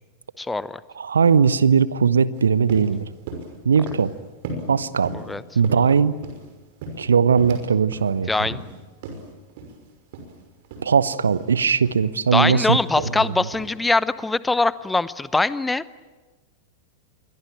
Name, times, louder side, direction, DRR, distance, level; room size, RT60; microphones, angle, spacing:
voice 1, 0.4-0.8 5.1-5.4 8.3-8.6 12.3-15.8, left 3 dB, 10° left, 17 dB, 0.8 m, -22 dB
voice 2, 1.0-3.0 3.6-4.1 4.7-5.1 5.6-6.1 7.0-8.3 10.8-13.1, right 6 dB, 70° right, 18 dB, 0.9 m, -19 dB
sound 1, 2.3-2.4 2.7-2.9 3.3-3.5 3.9-4.1 4.4-4.7 5.0-5.3 5.6-6.5 6.8-7.6 7.9-8.1 8.5-8.7 9.0-9.2 9.6-9.8 10.1-10.3 10.6-10.9 11.3-11.5 11.8-12.1 12.4-12.6 13.0-13.2 13.5-13.7, right 3 dB, 50° right, 5.9 m, -35 dB
28.0 x 23.0 x 9.0 m, 1.3 s
figure-of-eight pair, 90°, 0 cm